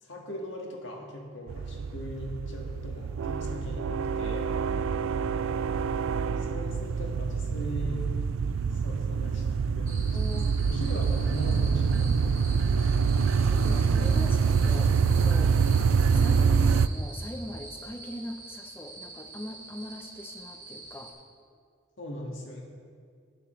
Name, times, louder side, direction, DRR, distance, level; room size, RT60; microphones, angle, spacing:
voice 1, 0.0-4.5 6.4-8.1 8.7-12.4 22.0-22.6, left 1 dB, 65° left, -1 dB, 1.8 m, -39 dB
sound 1, 1.5-16.9, right 5 dB, 85° right, 0.3 m, -26 dB
voice 2, 4.7-5.1 10.1-10.6 10.9-11.0 12.5-12.9 13.3-15.6 16.0-21.1, left 1 dB, 10° left, 5 dB, 0.6 m, -42 dB
sound 2, 9.9-21.1, right 2 dB, 40° right, 2.2 m, -45 dB
18.5 x 6.9 x 3.2 m, 2.2 s
head